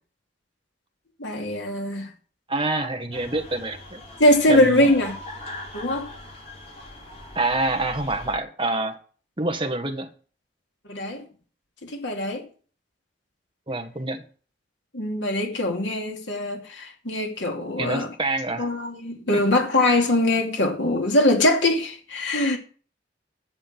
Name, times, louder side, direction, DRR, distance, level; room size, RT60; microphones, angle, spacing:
voice 1, 1.2-2.1 4.2-5.1 5.7-6.1 10.9-11.2 11.8-12.4 14.9-18.1 18.6-22.6, left 1 dB, 85° left, 2.7 m, -22 dB
voice 2, 2.5-4.0 4.5-4.9 7.3-9.0 9.4-10.1 13.7-14.2 17.8-18.7 19.3-19.4, right 2 dB, 30° right, 1.5 m, -26 dB
sound 1, 3.1-8.3, left 1 dB, 35° left, 4.0 m, -40 dB
10.5 x 7.4 x 6.0 m
head